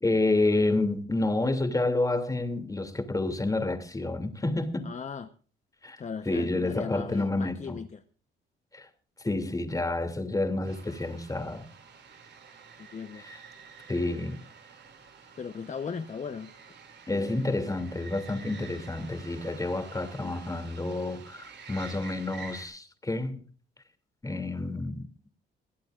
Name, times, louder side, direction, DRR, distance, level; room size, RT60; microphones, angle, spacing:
voice 1, 0.0-4.9 5.8-7.8 8.7-8.9 9.2-11.6 13.2-13.4 13.9-14.4 17.1-23.4 24.2-25.1, left 2 dB, 15° left, 2.8 m, -29 dB
voice 2, 4.8-5.3 6.0-8.0 12.8-13.2 15.4-16.5 20.2-20.4, left 6 dB, 35° left, 1.1 m, -38 dB
sound 1, 10.6-22.7, right 5 dB, 65° right, 5.7 m, -49 dB
22.5 x 15.5 x 2.5 m
cardioid pair, 90°, 20 cm